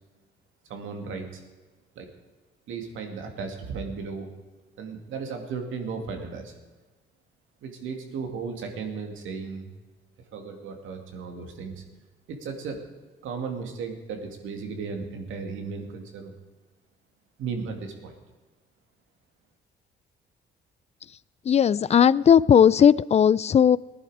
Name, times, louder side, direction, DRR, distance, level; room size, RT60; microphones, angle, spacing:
voice 1, 0.7-1.4 2.0-2.1 2.7-4.3 4.8-6.5 7.6-9.7 10.3-11.8 12.3-12.8 13.2-16.3 17.4-18.1, right 5 dB, 85° right, 4 dB, 2.4 m, -35 dB
voice 2, 21.5-23.8, left 8 dB, 35° left, 20 dB, 0.4 m, -17 dB
19.5 x 11.0 x 4.9 m, 1.3 s
cardioid pair, 90°, 20 cm